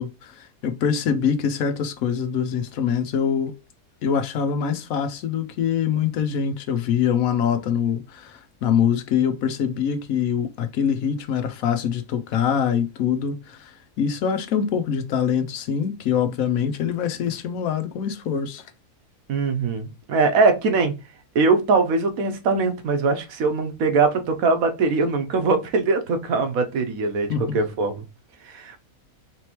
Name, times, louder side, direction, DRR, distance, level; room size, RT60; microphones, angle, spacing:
voice 1, 0.0-3.5 4.0-18.6 27.3-27.6, left 7 dB, 75° left, 1.1 m, -24 dB
voice 2, 19.3-20.9 21.3-28.0 28.5-28.8, right 4 dB, 70° right, 1.3 m, -21 dB
4.2 x 3.1 x 2.9 m
omnidirectional pair, 1.6 m